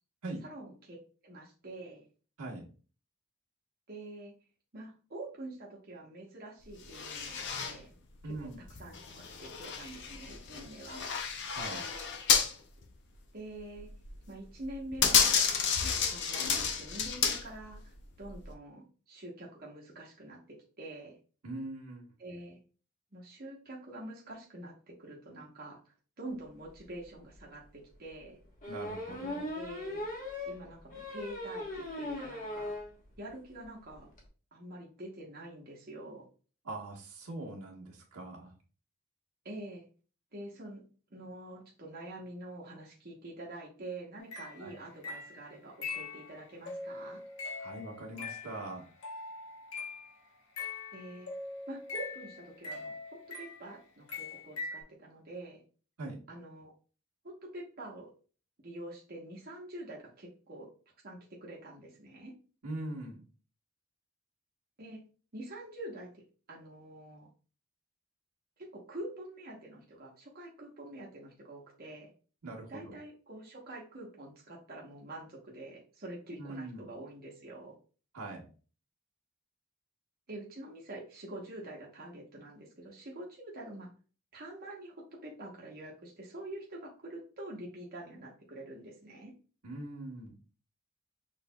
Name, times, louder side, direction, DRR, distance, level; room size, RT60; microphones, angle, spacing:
voice 1, 0.4-1.0 1.2-2.1 3.9-4.3 4.7-7.9 8.2-11.1 13.3-13.9 14.3-15.4 15.7-21.1 22.2-22.6 23.1-25.8 26.2-28.4 29.5-30.1 30.5-32.7 33.2-34.1 34.5-36.3 39.4-39.8 40.3-40.8 41.1-47.2 50.9-51.3 51.7-55.6 56.3-56.7 57.2-58.1 58.6-60.7 61.0-62.3 64.8-65.0 65.3-66.1 66.5-67.3 68.6-72.1 72.7-77.7 80.3-83.9 84.3-84.9 85.2-89.3, right 1 dB, 45° right, -2 dB, 1.0 m, -46 dB
sound 1, 6.9-7.8 8.3-12.5 12.8-12.9 13.8-14.2 14.6-17.7 18.3-18.5, left 7 dB, 50° left, 0.6 m, -30 dB
voice 2, 8.2-8.6 11.5-11.8 21.4-22.0 28.7-29.5 36.6-38.5 44.6-44.8 47.6-48.8 56.0-56.2 62.6-63.2 72.4-72.9 76.4-76.9 78.1-78.5 89.6-90.3, right 2 dB, 85° right, -3 dB, 1.4 m, -41 dB
sound 2, 26.9-27.0 27.3-27.4 28.6-32.9 33.3-33.4 33.6-33.7 33.9-34.2, left 1 dB, 35° left, 1.2 m, -39 dB
sound 3, 44.2-50.1 50.6-53.8 54.1-54.8, left 4 dB, 70° left, 1.0 m, -42 dB
6.0 x 3.3 x 2.2 m, 0.38 s
head